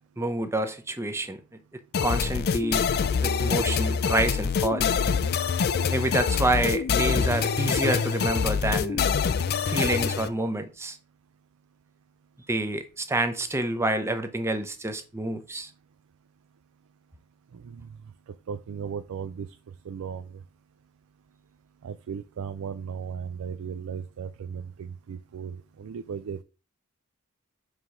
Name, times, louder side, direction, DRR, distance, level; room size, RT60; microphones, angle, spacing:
voice 1, 0.2-1.4 2.0-2.8 3.2-4.9 5.9-9.0 9.6-11.0 12.5-15.7, right 2 dB, 10° right, 0.6 m, -28 dB
sound 1, 1.9-10.3, left 6 dB, 45° left, 0.4 m, -25 dB
voice 2, 18.5-19.5 19.9-20.3 21.8-26.4, right 7 dB, 70° right, 0.4 m, -36 dB
4.9 x 3.7 x 5.5 m
head